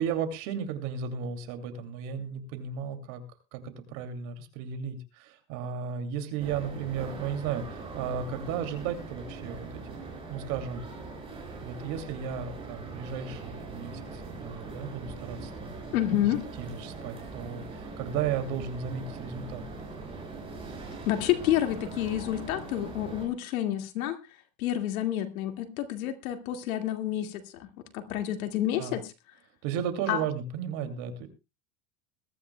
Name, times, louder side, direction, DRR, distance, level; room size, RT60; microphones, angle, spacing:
voice 1, 0.0-3.2 3.5-9.9 10.3-10.9 11.6-19.6 28.8-29.0 29.6-31.3, right 7 dB, 45° right, 7 dB, 2.7 m, -34 dB
sound 1, 6.4-23.3, right 3 dB, 15° right, 5.8 m, -41 dB
voice 2, 15.9-16.4 21.1-24.2 24.6-27.7 27.9-29.1 30.1-30.2, left 12 dB, 80° left, 6 dB, 2.3 m, -29 dB
21.5 x 13.0 x 2.3 m, 0.27 s
supercardioid pair, 160°, 42 cm